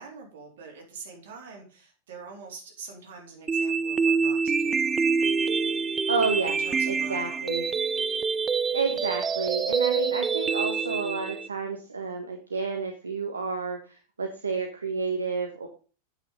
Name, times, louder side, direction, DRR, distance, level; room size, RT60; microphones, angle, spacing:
voice 1, 0.0-4.9 6.5-7.4, right 5 dB, 60° right, 1 dB, 4.0 m, -45 dB
sound 1, 3.5-11.5, right 5 dB, 20° right, 0.6 m, -26 dB
voice 2, 6.1-6.6 6.9-7.7 8.7-13.8 14.2-15.7, right 4 dB, 75° right, 3 dB, 1.5 m, -30 dB
9.0 x 7.9 x 5.5 m, 0.36 s
figure-of-eight pair, 90°, 0 cm